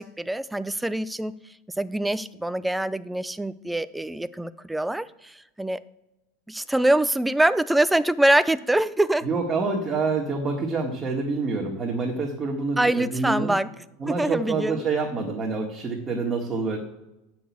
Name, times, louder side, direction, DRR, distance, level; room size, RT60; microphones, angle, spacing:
voice 1, 0.0-1.3 1.8-5.8 6.5-9.3 12.8-13.7 14.1-14.8, right 1 dB, 5° right, 14 dB, 0.4 m, -24 dB
voice 2, 9.2-13.6 14.0-16.8, right 4 dB, 20° right, -1 dB, 1.8 m, -27 dB
10.5 x 6.1 x 8.5 m, 0.95 s
supercardioid pair, 140°, 0 cm